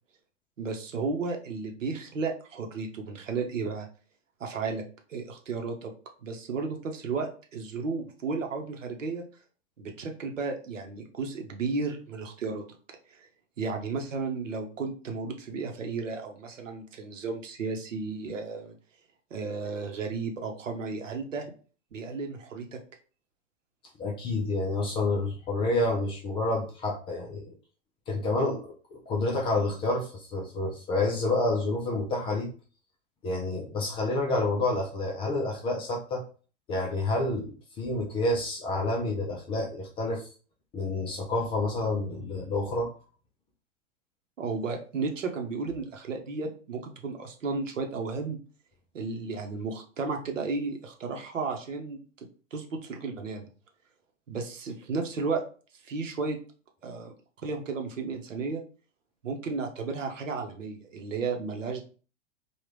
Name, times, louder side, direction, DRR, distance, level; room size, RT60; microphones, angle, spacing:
voice 1, 0.6-3.9 4.4-4.8 5.1-5.9 6.2-9.2 9.8-12.6 13.1-13.3 13.6-18.7 19.3-21.5 21.9-22.8 44.4-48.4 48.9-52.0 52.5-53.5 54.3-55.4 55.8-56.4 56.8-57.1 57.4-58.6 59.2-61.8, right 4 dB, 75° right, 3 dB, 0.9 m, -33 dB
voice 2, 24.0-27.5 28.1-32.5 33.2-36.2 36.7-40.3 40.7-42.9, left 2 dB, 15° left, -1 dB, 0.3 m, -29 dB
3.5 x 2.3 x 3.2 m, 0.38 s
figure-of-eight pair, 100°, 38 cm